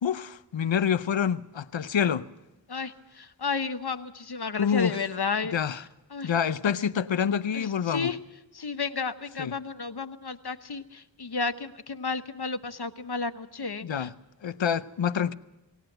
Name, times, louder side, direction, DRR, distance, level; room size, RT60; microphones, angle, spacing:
voice 1, 0.0-2.3 4.6-5.0 5.5-5.8 6.2-8.1 9.4-9.5 13.8-14.1 14.4-15.3, left 7 dB, 90° left, 0.7 m, -27 dB
voice 2, 2.7-5.5 6.1-6.3 7.5-8.2 8.5-14.1, left 4 dB, 60° left, 1.0 m, -32 dB
19.0 x 18.0 x 7.9 m
wide cardioid pair, 45°, 44 cm